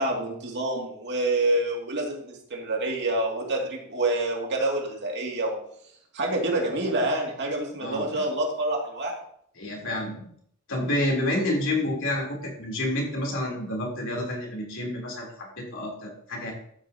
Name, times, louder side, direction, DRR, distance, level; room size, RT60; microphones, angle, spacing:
voice 1, 0.0-5.6 6.1-9.1, right 2 dB, 50° right, -1 dB, 2.5 m, -27 dB
voice 2, 9.6-10.2 10.7-16.5, left 1 dB, 60° left, -2 dB, 3.6 m, -29 dB
13.0 x 10.0 x 2.9 m, 0.66 s
head